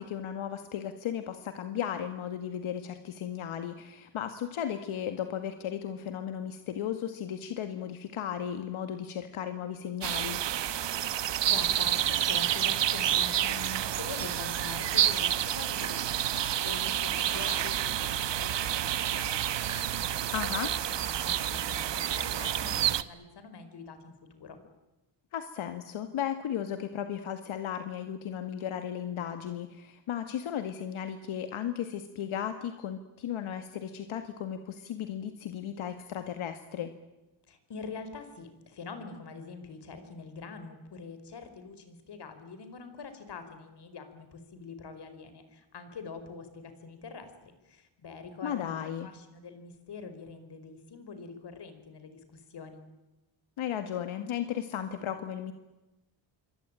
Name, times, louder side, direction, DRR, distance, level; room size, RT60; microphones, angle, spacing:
voice 1, 0.0-10.4 20.3-20.7 25.3-36.9 48.4-49.1 53.6-55.5, left 9 dB, 85° left, 8 dB, 2.0 m, -35 dB
sound 1, 10.0-23.0, right 11 dB, 60° right, 1.2 m, -29 dB
voice 2, 11.4-20.7 21.0-24.6 37.5-52.8, left 4 dB, 55° left, 9 dB, 5.1 m, -45 dB
sound 2, 14.9-16.7 17.0-17.9 18.7-20.0 20.2-20.4 20.9-21.4, right 4 dB, 35° right, 5.0 m, -48 dB
27.5 x 24.0 x 9.0 m, 1.0 s
cardioid pair, 130°, 48 cm